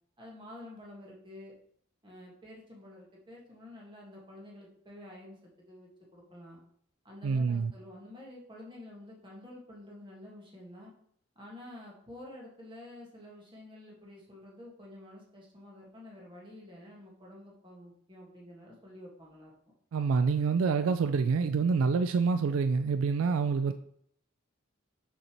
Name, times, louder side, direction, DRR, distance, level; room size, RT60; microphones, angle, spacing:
voice 1, 0.2-1.6 2.0-6.6 7.0-10.9 11.3-19.5, left 1 dB, 25° right, -3 dB, 1.5 m, -49 dB
voice 2, 7.2-7.7 19.9-23.7, right 5 dB, 80° right, 10 dB, 0.3 m, -27 dB
6.6 x 6.5 x 2.9 m, 0.67 s
head